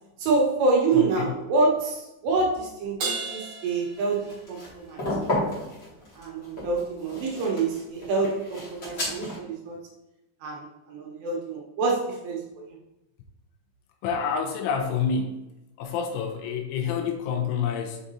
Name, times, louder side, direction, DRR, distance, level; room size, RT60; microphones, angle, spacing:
voice 1, 0.2-5.0 5.3-5.5 6.2-9.8 10.4-12.4, right 3 dB, 75° right, -2 dB, 2.9 m, -26 dB
voice 2, 0.9-1.3 14.0-15.5 15.8-18.0, left 6 dB, 80° left, 3 dB, 3.0 m, -28 dB
Crash cymbal, 3.0-4.7, right 4 dB, 50° right, 2.5 m, -34 dB
sound 1, 4.0-9.3, left 1 dB, 45° left, 1.3 m, -32 dB
6.3 x 5.9 x 2.7 m, 0.95 s
omnidirectional pair, 5.7 m